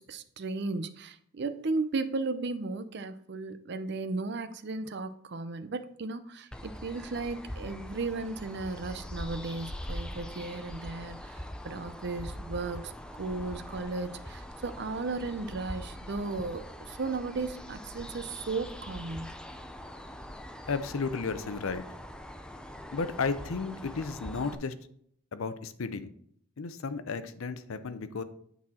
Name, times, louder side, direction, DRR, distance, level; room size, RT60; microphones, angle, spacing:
voice 1, 0.0-19.3, right 3 dB, 55° right, 11 dB, 0.5 m, -35 dB
sound 1, 6.5-24.6, equal, 5° left, 0.4 m, -43 dB
voice 2, 20.7-21.8 22.9-24.7 25.3-26.1 26.6-28.2, left 4 dB, 85° left, 12 dB, 0.6 m, -33 dB
8.7 x 4.1 x 4.2 m, 0.67 s
head